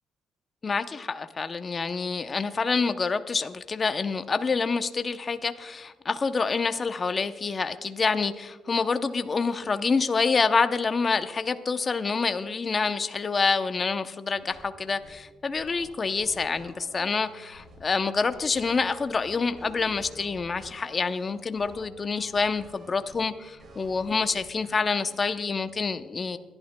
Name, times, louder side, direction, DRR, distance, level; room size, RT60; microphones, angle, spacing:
voice 1, 0.6-26.4, left 4 dB, 35° left, 10 dB, 0.6 m, -27 dB
sound 1, 14.4-25.8, right 1 dB, 45° right, 3.9 m, -51 dB
28.5 x 11.5 x 2.2 m, 1.2 s
cardioid pair, 90°, 0 cm